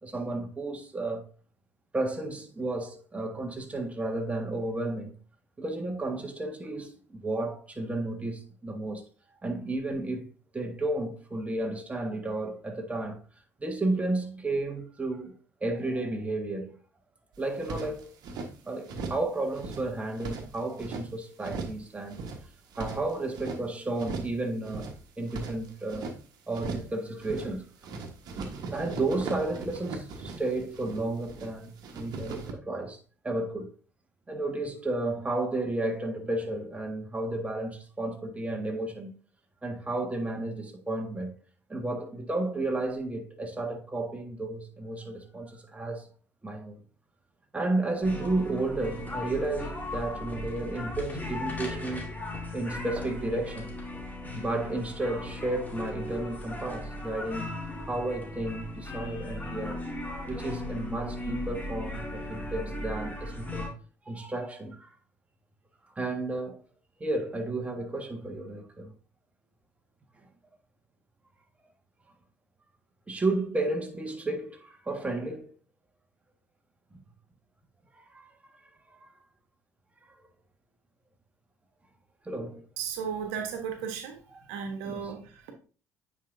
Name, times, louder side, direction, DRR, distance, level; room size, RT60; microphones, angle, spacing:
voice 1, 0.0-1.2 1.9-5.1 5.6-9.0 9.4-13.2 13.6-16.8 17.4-18.1 18.6-22.2 22.8-24.9 25.2-26.1 26.5-27.7 28.4-33.0 33.2-33.7 34.3-39.1 39.6-41.3 41.7-46.1 46.4-46.8 47.5-52.1 52.5-53.7 54.3-57.6 57.9-59.9 60.3-63.7 64.0-64.9 65.9-66.6 67.0-68.9 73.1-75.5 76.9-77.0 78.0-78.3 78.9-79.1 82.2-82.6 84.3-84.4 84.9-85.1, right 2 dB, 15° right, 1.6 m, -32 dB
sound 1, 17.4-18.5 18.9-19.3 19.5-21.1 21.4-21.8 22.1-23.6 24.0-24.4 24.6-26.2 26.5-26.9 27.2-27.6 27.8-31.5 31.8-32.5, right 3 dB, 55° right, 1.3 m, -39 dB
sound 2, 48.0-63.7, left 2 dB, 20° left, 2.2 m, -37 dB
voice 2, 82.8-84.2 84.5-85.5, right 7 dB, 70° right, 1.2 m, -35 dB
9.0 x 5.0 x 2.7 m
hypercardioid pair, 55°, 8 cm